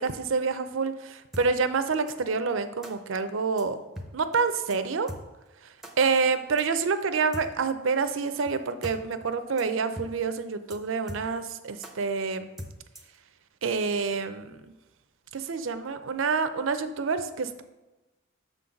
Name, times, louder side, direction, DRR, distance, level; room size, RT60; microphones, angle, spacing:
voice 1, 0.0-3.8 4.1-5.1 5.6-12.5 13.6-14.6 15.3-17.6, right 5 dB, 70° right, 10 dB, 0.5 m, -27 dB
sound 1, 1.3-1.5 2.1-2.2 2.8-2.9 3.6-3.7 4.0-4.1 4.3-4.4 4.7-4.8 5.1-5.2 5.8-5.9 6.6-6.7 7.3-7.5 8.1-8.2 8.5-8.6 8.8-9.0 9.2-9.3 9.6-9.7 10.0-10.1 10.3-10.4 10.7-10.8 11.1-11.5 11.8-11.9 12.6-13.2, equal, ahead, 0.7 m, -40 dB
6.9 x 3.9 x 5.8 m, 1.1 s
head